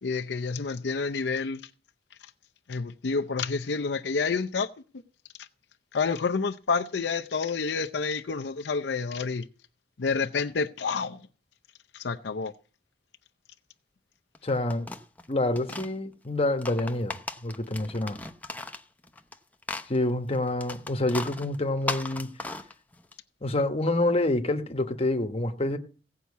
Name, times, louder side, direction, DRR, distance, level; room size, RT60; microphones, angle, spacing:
voice 1, 0.0-1.7 2.7-4.7 5.4-5.5 5.9-9.5 10.0-11.2 11.9-12.5, left 4 dB, 75° left, 0.6 m, -29 dB
sound 1, 14.3-15.9 16.5-19.4 19.6-23.1, left 2 dB, 10° left, 0.7 m, -37 dB
voice 2, 14.4-14.9 15.3-18.2 19.9-22.3 23.4-25.8, left 2 dB, 35° left, 1.1 m, -27 dB
16.5 x 5.7 x 8.3 m
head